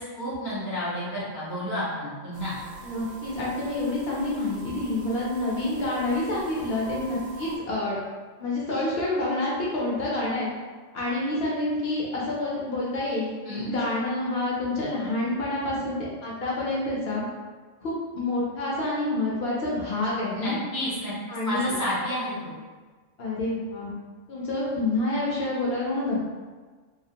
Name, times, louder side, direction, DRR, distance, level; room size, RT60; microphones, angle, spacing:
voice 1, 0.0-2.6 13.5-13.7 20.3-21.1 21.4-22.5, left 1 dB, 30° right, -10 dB, 0.3 m, -30 dB
sound 1, 2.3-7.6, right 3 dB, 65° right, 0.6 m, -44 dB
voice 2, 2.8-8.0 8.4-10.5 10.9-17.2 17.8-20.6 21.3-21.7 23.2-23.9 24.3-26.3, left 2 dB, 60° left, -6 dB, 0.7 m, -28 dB
2.3 x 2.0 x 2.7 m, 1.4 s
omnidirectional pair, 1.3 m